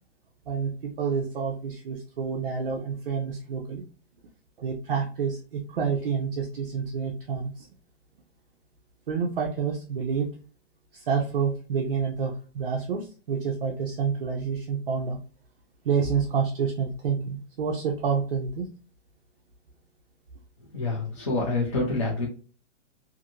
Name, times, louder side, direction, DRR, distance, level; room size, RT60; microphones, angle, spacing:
voice 1, 0.5-3.8 4.6-7.5 9.1-10.3 11.1-15.2 15.9-18.7, right 6 dB, 45° right, -1 dB, 0.5 m, -28 dB
voice 2, 20.7-22.3, left 2 dB, 25° left, -4 dB, 0.4 m, -27 dB
2.6 x 2.6 x 2.7 m, 0.38 s
hypercardioid pair, 175°, 37 cm